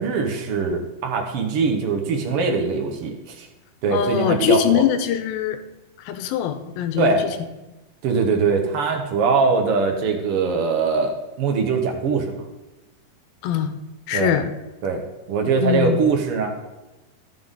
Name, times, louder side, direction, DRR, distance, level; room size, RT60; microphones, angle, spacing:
voice 1, 0.0-3.5 3.8-4.8 7.0-7.2 8.0-12.4 14.1-14.4 14.8-15.0 15.3-16.5, right 4 dB, 60° right, 3 dB, 1.5 m, -22 dB
voice 2, 3.9-5.6 6.1-7.3 13.4-13.7 14.1-14.5 15.6-16.0, left 10 dB, 85° left, 9 dB, 2.5 m, -22 dB
14.5 x 6.0 x 3.7 m, 1.1 s
omnidirectional pair, 4.2 m